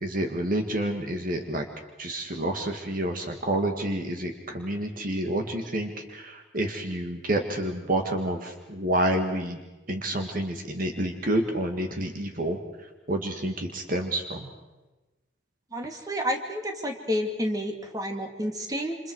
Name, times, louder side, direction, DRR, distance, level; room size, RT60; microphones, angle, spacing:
voice 1, 0.0-1.7 2.0-9.6 9.9-12.6 13.1-14.5, right 1 dB, 50° right, 4 dB, 2.0 m, -29 dB
voice 2, 15.7-19.0, equal, 20° right, 3 dB, 2.6 m, -30 dB
28.0 x 27.5 x 4.8 m, 1.1 s
head